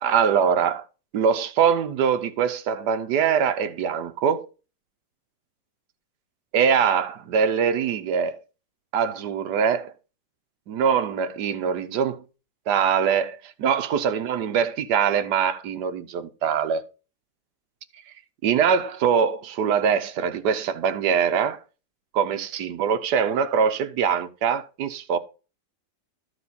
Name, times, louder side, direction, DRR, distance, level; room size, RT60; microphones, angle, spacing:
voice 1, 0.0-0.8 1.1-4.5 6.5-8.4 8.9-9.9 10.7-12.2 12.7-16.8 18.4-21.6 22.1-25.2, right 7 dB, 70° right, 1.3 m, -23 dB
13.0 x 4.8 x 4.0 m
omnidirectional pair, 2.0 m